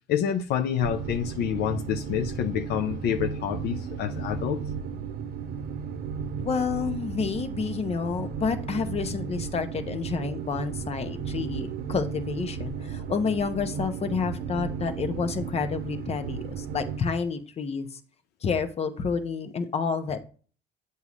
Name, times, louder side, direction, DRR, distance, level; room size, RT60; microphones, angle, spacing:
voice 1, 0.1-4.6, left 9 dB, 75° left, 0.6 m, -28 dB
sound 1, 0.8-17.0, right 6 dB, 60° right, 0.8 m, -34 dB
voice 2, 6.4-18.0 18.4-20.2, left 5 dB, 40° left, 0.9 m, -29 dB
8.1 x 2.8 x 6.0 m
cardioid pair, 110°, 17 cm